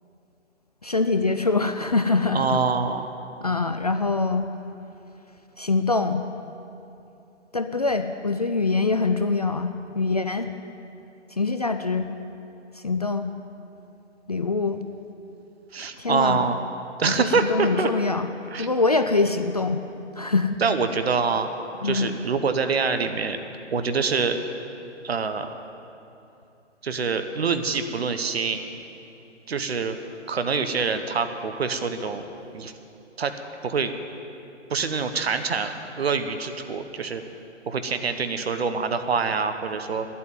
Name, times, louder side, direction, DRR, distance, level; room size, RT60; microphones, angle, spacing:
voice 1, 0.8-2.6 3.4-4.5 5.6-6.3 7.5-10.5 11.3-12.1 12.8-13.3 14.3-14.8 16.0-16.4 17.0-18.3 18.6-19.8 20.2-20.6 21.8-22.2, left 3 dB, 35° left, 8 dB, 0.4 m, -24 dB
voice 2, 2.3-3.1 15.7-16.6 17.0-17.9 18.5-18.7 20.6-21.5 21.8-23.4 23.7-24.4 25.0-25.6 26.8-28.6 29.5-30.0 30.3-32.3 32.5-32.7 33.2-33.3 33.6-33.9 34.7-37.2 37.7-40.1, right 5 dB, 55° right, 8 dB, 1.1 m, -25 dB
11.0 x 8.5 x 9.5 m, 2.8 s
figure-of-eight pair, 140°, 37 cm